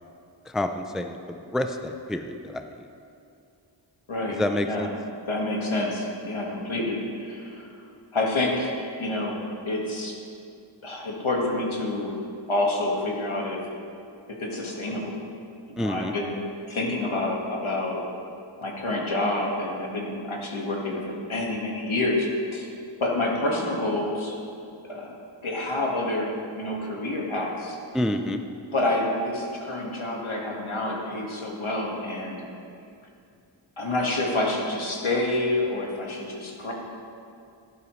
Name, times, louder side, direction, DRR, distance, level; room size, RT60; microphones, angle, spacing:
voice 1, 0.5-1.2 1.5-2.8 4.3-4.9 15.8-16.1 27.9-28.4, left 1 dB, ahead, 6 dB, 0.5 m, -28 dB
voice 2, 4.1-4.4 4.7-4.9 5.3-7.7 8.1-9.4 9.6-10.2 10.8-12.1 12.5-13.6 14.3-15.2 15.7-16.4 16.7-18.0 18.6-22.7 23.0-24.4 24.9-25.1 25.4-26.3 26.6-27.8 28.7-32.4 33.8-36.7, left 2 dB, 75° left, -1 dB, 1.8 m, -28 dB
12.0 x 11.5 x 3.2 m, 2.5 s
wide cardioid pair, 45°, 49 cm